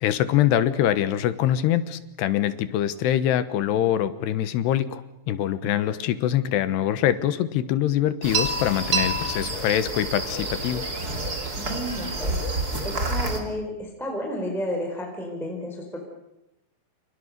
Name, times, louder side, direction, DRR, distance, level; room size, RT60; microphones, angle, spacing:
voice 1, 0.0-5.0 5.3-10.9, left 11 dB, 75° left, 12 dB, 3.1 m, -24 dB
sound 1, 8.2-13.4, right 2 dB, 25° right, 2.8 m, -28 dB
voice 2, 11.6-12.4 12.8-16.1, equal, ahead, 1 dB, 4.2 m, -32 dB
29.5 x 28.0 x 6.7 m, 0.88 s
omnidirectional pair, 5.1 m